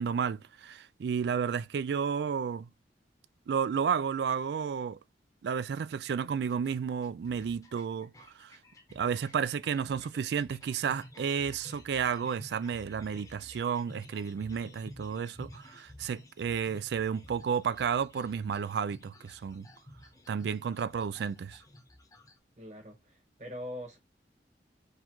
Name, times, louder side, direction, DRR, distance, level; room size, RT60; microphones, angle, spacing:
voice 1, 0.0-2.7 3.5-5.0 5.4-8.6 8.9-19.7 20.3-21.6, right 7 dB, 70° right, 0.3 m, -32 dB
sound 1, 6.5-22.4, left 1 dB, 20° left, 0.8 m, -53 dB
voice 2, 22.6-24.0, left 1 dB, 40° right, 1.4 m, -43 dB
3.9 x 2.6 x 4.5 m
head